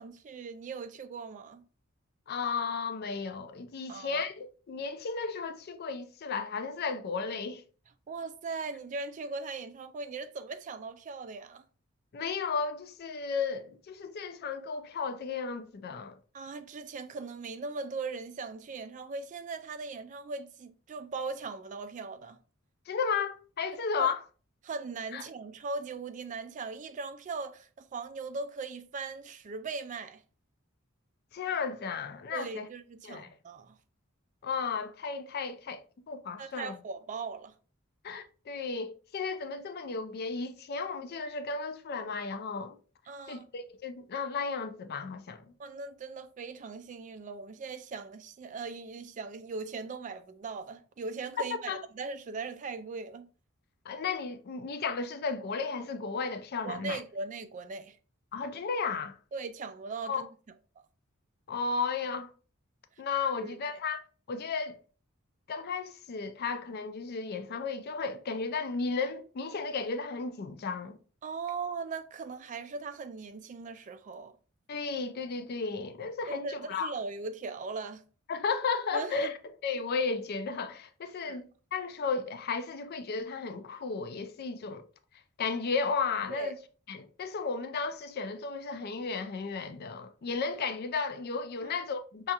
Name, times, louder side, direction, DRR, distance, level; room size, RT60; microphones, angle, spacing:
voice 1, 0.0-1.6 3.9-4.3 8.1-11.6 16.3-22.4 24.0-24.1 24.6-30.2 32.3-33.8 36.4-37.5 43.1-43.5 45.6-53.3 56.6-58.0 59.3-60.3 63.4-63.7 71.2-74.3 76.3-78.0 78.9-79.3 81.2-81.4 86.3-86.5 91.6-91.8, right 4 dB, 35° right, 0.3 m, -39 dB
voice 2, 2.3-7.6 12.1-16.1 22.9-24.2 25.1-25.2 31.3-32.7 33.0-33.3 34.4-36.7 38.0-42.7 43.3-45.5 51.7-51.8 53.9-57.0 58.3-59.2 60.0-60.2 61.5-62.3 63.0-64.0 64.3-64.8 65.5-71.0 74.7-76.9 78.3-79.3 79.6-84.8 85.4-86.6 86.9-92.3, left 5 dB, 50° left, 0.4 m, -34 dB
5.4 x 2.4 x 2.8 m
head